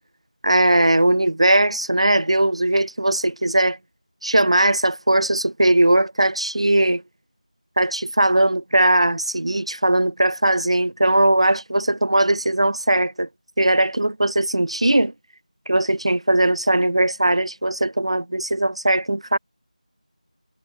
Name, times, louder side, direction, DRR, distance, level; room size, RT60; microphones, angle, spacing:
voice 1, 0.4-3.8 4.2-7.0 7.8-13.3 13.6-15.1 15.7-19.4, right 1 dB, 50° right, 3.8 m, -19 dB
figure-of-eight pair, 175°, 4 cm